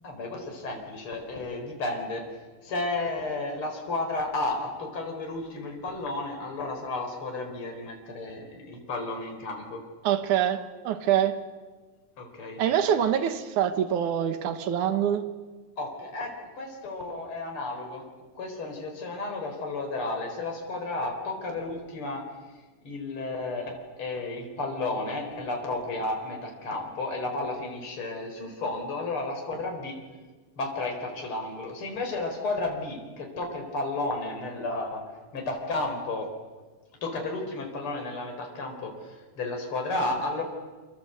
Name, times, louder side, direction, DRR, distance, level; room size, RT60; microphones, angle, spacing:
voice 1, 0.0-2.3 2.6-9.8 12.2-12.6 15.8-18.1 18.4-22.2 22.8-30.0 30.6-35.0 35.3-36.3 37.0-40.4, left 2 dB, 40° left, 2 dB, 5.3 m, -32 dB
voice 2, 10.0-11.4 12.6-15.3, right 9 dB, 75° right, 9 dB, 3.0 m, -25 dB
28.0 x 26.0 x 8.2 m, 1.3 s
omnidirectional pair, 3.6 m